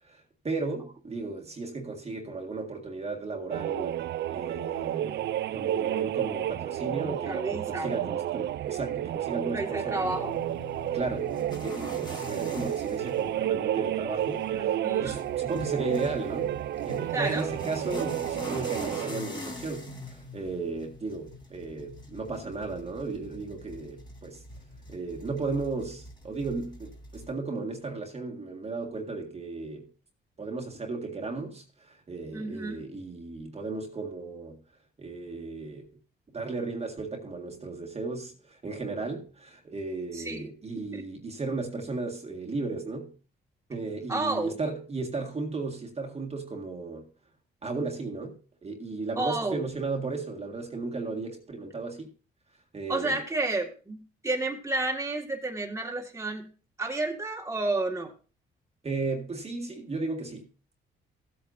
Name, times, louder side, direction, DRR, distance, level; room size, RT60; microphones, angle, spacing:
voice 1, 0.0-4.0 4.3-10.3 10.9-16.6 16.8-24.4 24.9-29.9 30.4-34.6 35.0-35.9 36.3-43.2 43.7-47.1 47.6-52.1 52.7-53.2 58.8-60.5, right 3 dB, 30° right, 1.8 m, -35 dB
sound 1, 3.5-19.2, right 12 dB, 60° right, 0.4 m, -31 dB
voice 2, 7.3-7.9 9.5-10.4 14.5-15.2 17.1-17.5 32.3-32.9 40.1-40.5 40.8-41.0 44.1-44.6 49.2-49.6 52.9-56.5 56.8-58.1, right 2 dB, 15° right, 1.9 m, -31 dB
sound 2, 10.0-27.3, left 2 dB, 20° left, 2.7 m, -43 dB
15.0 x 8.5 x 2.7 m
cardioid pair, 90°, 20 cm